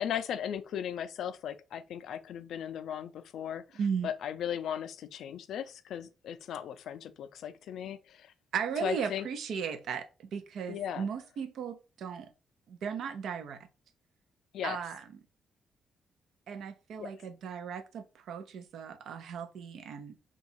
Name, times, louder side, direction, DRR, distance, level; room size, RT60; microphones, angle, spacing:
voice 1, 0.0-8.3 8.8-9.3 10.7-11.1 14.5-14.8 17.0-17.1, left 9 dB, 80° left, 0.3 m, -37 dB
voice 2, 3.7-4.1 8.5-12.3 12.7-13.7 14.6-15.0 16.5-20.2, right 6 dB, 75° right, 0.5 m, -36 dB
2.8 x 2.3 x 4.1 m
cardioid pair, 115°, 0 cm